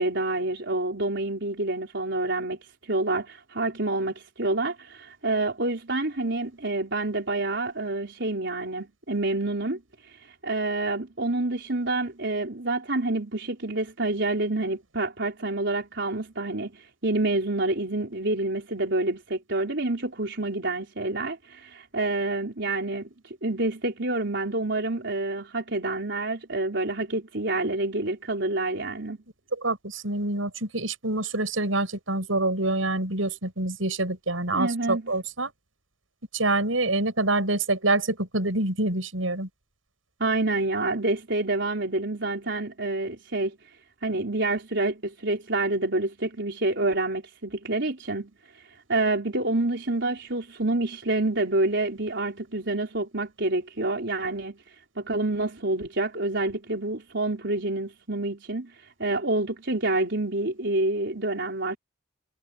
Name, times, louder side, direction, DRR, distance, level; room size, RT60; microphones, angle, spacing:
voice 1, 0.0-2.6 2.8-9.8 10.1-10.2 10.4-29.2 34.5-35.1 40.2-43.6 44.0-48.6 48.9-54.6 55.0-61.8, right 2 dB, 60° right, 4.6 m, -28 dB
voice 2, 29.5-35.5 36.3-39.5, right 2 dB, 80° right, 7.7 m, -26 dB
head